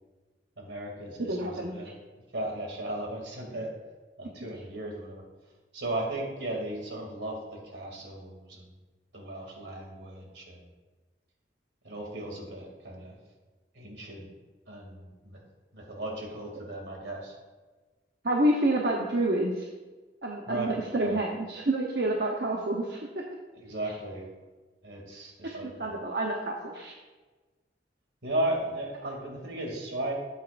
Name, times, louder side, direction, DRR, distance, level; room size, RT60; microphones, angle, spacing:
voice 1, 0.6-1.9 2.3-3.7 4.2-5.2 5.7-8.7 9.1-10.6 11.8-13.2 13.7-14.3 14.7-15.4 15.7-17.3 20.5-21.2 23.6-24.3 24.8-26.0 28.2-30.1, right 1 dB, 75° right, -1 dB, 2.5 m, -36 dB
voice 2, 1.3-1.7 18.2-19.7 20.2-23.1 25.4-26.9, right 1 dB, 60° right, -1 dB, 0.9 m, -28 dB
13.5 x 8.3 x 2.5 m, 1.3 s
head